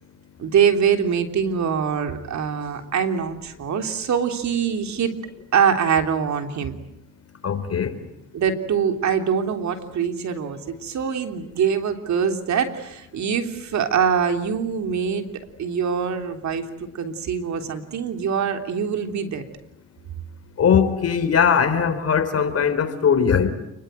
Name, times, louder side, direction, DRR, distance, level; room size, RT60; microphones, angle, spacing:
voice 1, 0.4-5.1 5.5-6.8 8.3-15.3 15.6-16.6 16.9-19.4, right 7 dB, 65° right, 6 dB, 3.4 m, -23 dB
voice 2, 7.4-8.0 20.6-23.5, left 7 dB, 55° left, 9 dB, 4.1 m, -20 dB
29.5 x 21.0 x 9.2 m, 0.85 s
cardioid pair, 90°, 30 cm